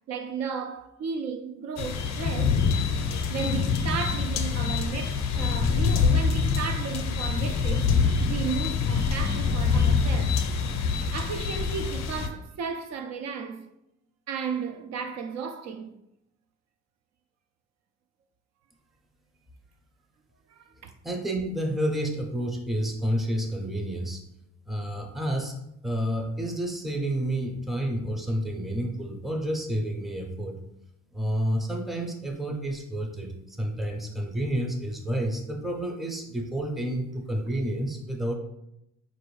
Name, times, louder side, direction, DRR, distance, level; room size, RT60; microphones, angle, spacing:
voice 1, 0.1-2.6 3.3-7.9 8.2-10.4 11.1-13.6 14.3-15.9 20.5-20.9, right 6 dB, 60° right, 0.4 m, -34 dB
sound 1, 1.8-12.3, left 5 dB, 60° left, 0.5 m, -25 dB
voice 2, 21.0-24.2 24.7-25.5 25.8-30.6 31.1-38.3, right 1 dB, ahead, 0.5 m, -30 dB
4.6 x 2.6 x 3.1 m
cardioid pair, 90°, 30 cm